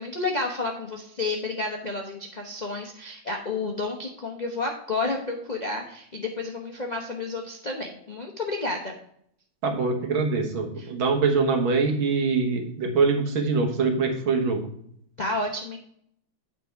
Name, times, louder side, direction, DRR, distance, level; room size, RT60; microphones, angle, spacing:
voice 1, 0.0-8.9 10.8-10.9 15.2-15.8, left 3 dB, 55° left, 0 dB, 0.4 m, -31 dB
voice 2, 9.6-14.6, right 4 dB, 85° right, 4 dB, 2.1 m, -24 dB
9.2 x 4.5 x 4.5 m, 0.70 s
omnidirectional pair, 2.2 m